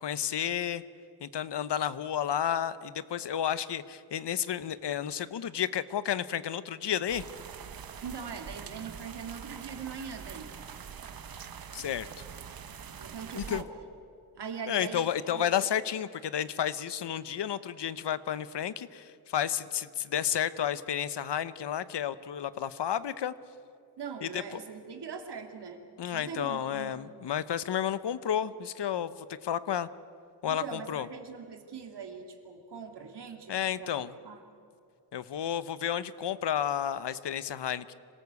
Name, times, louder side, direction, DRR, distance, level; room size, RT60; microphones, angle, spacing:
voice 1, 0.0-0.8 1.2-7.2 11.7-12.1 13.4-13.6 14.7-23.3 24.2-24.4 26.0-29.9 30.4-31.1 33.5-34.1 35.1-37.9, left 9 dB, 80° left, 16 dB, 0.9 m, -31 dB
sound 1, 7.1-13.6, right 7 dB, 60° right, 1.1 m, -44 dB
voice 2, 8.0-10.5 13.0-13.7 14.3-15.7 24.0-27.0 30.5-34.4, right 6 dB, 75° right, 4 dB, 2.7 m, -41 dB
26.0 x 18.5 x 8.3 m, 2.5 s
wide cardioid pair, 130°, 41 cm